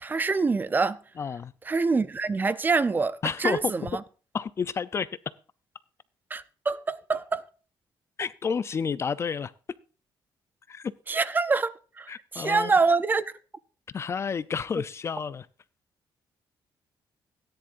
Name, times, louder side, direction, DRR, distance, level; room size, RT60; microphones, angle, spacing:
voice 1, 0.0-1.0 1.7-4.0 6.3-7.4 11.1-13.2, right 4 dB, 20° right, 0.5 m, -25 dB
voice 2, 1.2-1.5 3.2-3.7 4.3-5.1 8.2-9.5 10.7-10.9 12.1-12.7 13.9-15.5, left 6 dB, 30° left, 0.4 m, -30 dB
17.0 x 10.5 x 2.5 m
cardioid pair, 155°, 9 cm